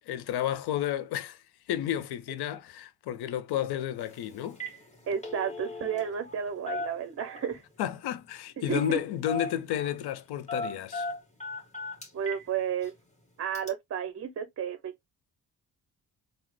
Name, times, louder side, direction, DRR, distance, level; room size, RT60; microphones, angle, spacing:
voice 1, 0.1-1.4 1.7-4.6 7.8-11.1, left 11 dB, 65° left, 0.6 m, -31 dB
Telephone, 4.0-4.2 4.5-4.8 5.1-6.4 6.7-7.6 8.8-9.0 9.3-10.0 10.5-12.5 12.8-12.9 13.5-13.7, left 2 dB, 15° left, 1.3 m, -37 dB
voice 2, 5.1-7.6 8.7-9.0 12.1-12.9 13.4-15.1, right 8 dB, 35° right, 0.6 m, -32 dB
3.6 x 2.0 x 3.1 m
supercardioid pair, 50°, 41 cm